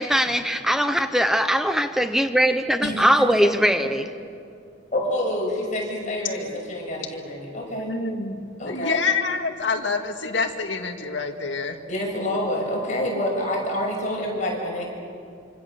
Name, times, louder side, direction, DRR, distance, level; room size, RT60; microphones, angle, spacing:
voice 1, 0.0-4.1, equal, ahead, 8 dB, 0.7 m, -21 dB
voice 2, 4.9-8.0 8.6-9.0 11.8-14.9, left 1 dB, 40° left, -1 dB, 6.8 m, -27 dB
voice 3, 7.7-11.8, left 4 dB, 70° left, 5 dB, 2.0 m, -27 dB
26.5 x 26.0 x 7.0 m, 2.4 s
head